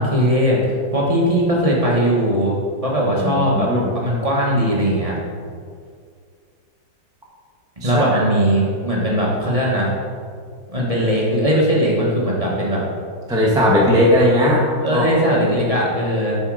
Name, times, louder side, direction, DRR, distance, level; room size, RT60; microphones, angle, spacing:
voice 1, 0.0-2.5 2.8-3.7 4.0-5.2 7.8-9.9 10.7-12.8 14.8-16.4, equal, 20° right, -5 dB, 1.3 m, -19 dB
voice 2, 3.2-4.0 7.8-8.3 13.3-14.6 14.9-15.1, left 1 dB, 5° right, -5 dB, 0.8 m, -17 dB
8.0 x 5.7 x 4.8 m, 2.1 s
omnidirectional pair, 2.1 m